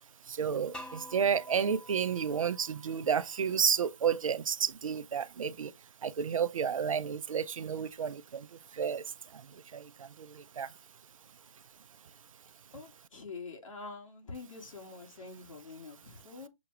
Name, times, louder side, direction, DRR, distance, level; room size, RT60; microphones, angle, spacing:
voice 1, 0.3-5.7 6.0-8.5 8.8-9.0 9.7-9.9 10.6-10.7, right 7 dB, 75° right, 0.5 m, -31 dB
sound 1, 0.7-3.6, left 1 dB, 5° left, 0.6 m, -49 dB
voice 2, 12.7-16.5, left 4 dB, 70° left, 1.9 m, -46 dB
6.9 x 2.4 x 2.9 m
hypercardioid pair, 145°, 17 cm